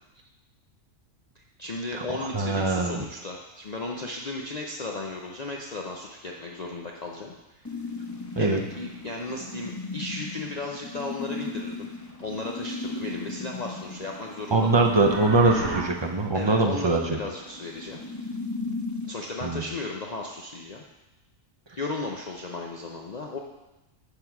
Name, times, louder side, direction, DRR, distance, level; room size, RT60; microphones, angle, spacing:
voice 1, 1.6-7.7 8.4-11.9 12.2-14.8 16.3-18.0 19.1-20.8 21.8-23.4, left 3 dB, 45° left, -1 dB, 0.6 m, -35 dB
voice 2, 2.3-3.0 8.4-8.6 14.5-17.2 19.4-19.6, right 3 dB, 45° right, 2 dB, 0.3 m, -22 dB
sound 1, 7.6-19.1, left 3 dB, 15° left, 0.8 m, -37 dB
sound 2, 14.4-15.8, right 3 dB, 75° right, 1.9 m, -33 dB
9.5 x 3.9 x 5.9 m, 1.0 s
omnidirectional pair, 1.4 m